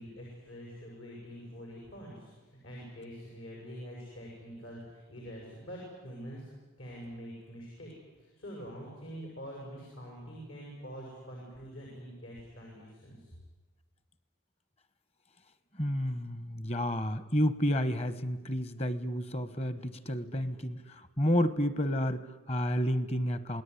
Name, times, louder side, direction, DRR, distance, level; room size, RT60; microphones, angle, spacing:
voice 1, 0.0-6.5 6.8-7.9 8.2-13.3, equal, 75° left, -2 dB, 7.6 m, -45 dB
voice 2, 15.7-23.6, equal, 30° left, 15 dB, 1.1 m, -30 dB
27.5 x 18.5 x 9.9 m, 1.3 s
head